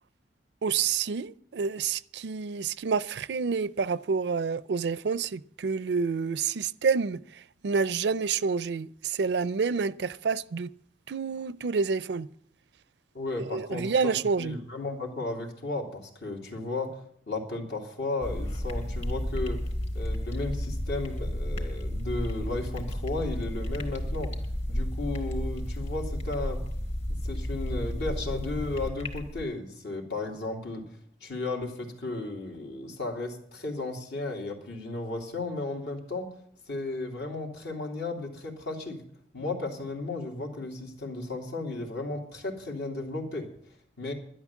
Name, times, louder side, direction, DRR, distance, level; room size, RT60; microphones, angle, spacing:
voice 1, 0.6-10.7 11.1-12.3 13.4-14.6, right 5 dB, 70° right, 0.4 m, -28 dB
voice 2, 13.1-16.9 17.3-19.6 19.9-24.3 24.7-26.6 27.1-30.8 31.2-36.3 36.7-39.0 39.3-43.5 44.0-44.1, left 2 dB, 70° left, 3.0 m, -34 dB
sound 1, 18.2-29.4, equal, 40° left, 2.9 m, -32 dB
12.0 x 11.5 x 7.3 m
head